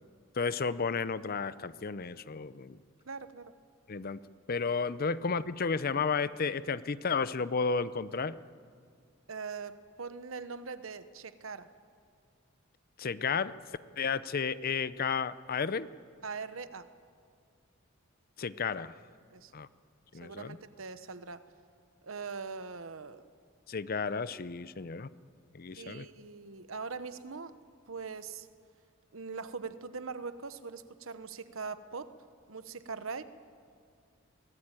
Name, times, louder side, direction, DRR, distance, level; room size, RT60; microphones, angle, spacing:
voice 1, 0.4-2.8 3.9-4.2 4.5-8.4 13.0-13.6 14.0-15.9 18.4-19.0 19.5-19.7 20.1-20.6 23.7-25.1 25.5-26.1, left 5 dB, 45° left, 16 dB, 0.6 m, -32 dB
voice 2, 3.1-3.5 9.3-11.7 16.2-16.9 19.3-19.5 20.2-21.4 22.0-23.3 25.7-27.5 27.9-28.5 29.1-32.1 32.5-33.2, right 5 dB, 75° right, 12 dB, 1.0 m, -41 dB
23.5 x 18.0 x 9.0 m, 2.2 s
head